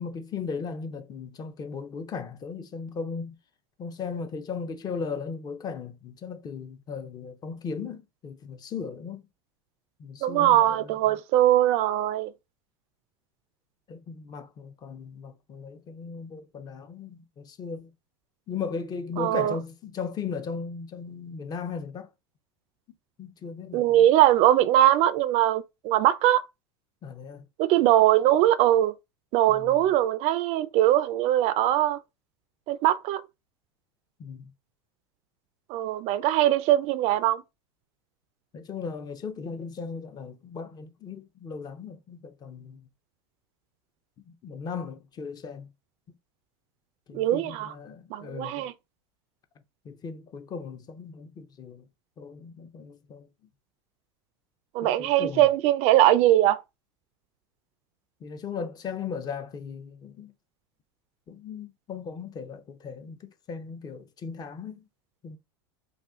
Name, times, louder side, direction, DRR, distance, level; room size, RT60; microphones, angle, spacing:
voice 1, 0.0-3.4 3.8-9.3 10.0-11.2 13.9-17.9 18.5-22.1 23.2-24.1 27.0-27.5 29.5-29.9 34.2-34.5 38.5-42.9 44.3-45.7 47.1-48.7 49.8-51.9 52.2-53.3 54.8-55.5 58.2-60.3 61.3-64.9 65.2-65.4, left 5 dB, 30° left, 0.6 m, -37 dB
voice 2, 10.2-12.3 19.2-19.6 23.7-26.4 27.6-28.9 29.3-32.0 32.7-33.2 35.7-37.4 47.1-47.7 48.1-48.7 54.7-56.6, right 13 dB, 50° right, 0.4 m, -21 dB
2.5 x 2.4 x 3.5 m
hypercardioid pair, 100°, 14 cm